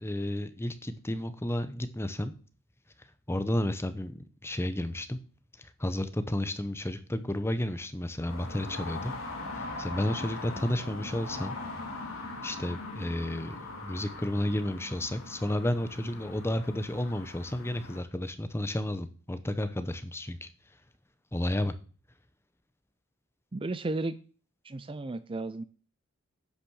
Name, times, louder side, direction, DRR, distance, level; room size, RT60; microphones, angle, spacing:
voice 1, 0.0-2.3 3.3-5.2 5.6-9.1 9.5-11.6 12.4-20.5 21.3-21.7, left 1 dB, 10° left, 11 dB, 0.8 m, -32 dB
sound 1, 8.3-18.0, left 2 dB, 70° left, 2.5 m, -41 dB
voice 2, 23.5-24.1 24.6-25.6, right 2 dB, 25° right, 13 dB, 0.5 m, -33 dB
10.0 x 6.2 x 6.3 m, 0.39 s
head